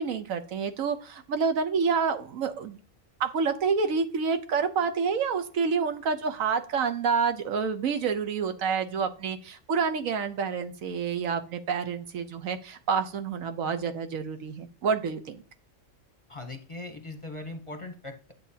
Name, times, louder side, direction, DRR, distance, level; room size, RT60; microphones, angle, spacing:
voice 1, 0.0-2.8 3.2-15.4, right 5 dB, 85° right, 8 dB, 1.3 m, -28 dB
voice 2, 16.3-18.3, left 2 dB, 30° left, 4 dB, 0.8 m, -40 dB
9.5 x 7.5 x 2.8 m, 0.38 s
omnidirectional pair, 1.4 m